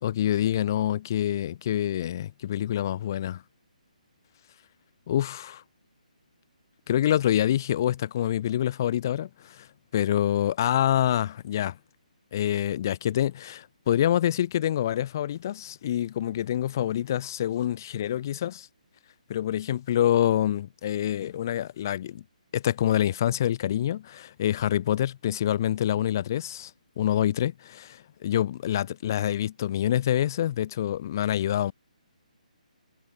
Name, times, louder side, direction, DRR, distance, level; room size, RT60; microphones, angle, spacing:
voice 1, 0.0-3.4 5.1-5.6 6.9-9.7 9.9-11.8 12.3-18.7 19.3-22.2 22.5-26.7 27.0-27.9 28.2-31.7, left 11 dB, 25° left, 2.1 m, -26 dB
hypercardioid pair, 175°, 4 cm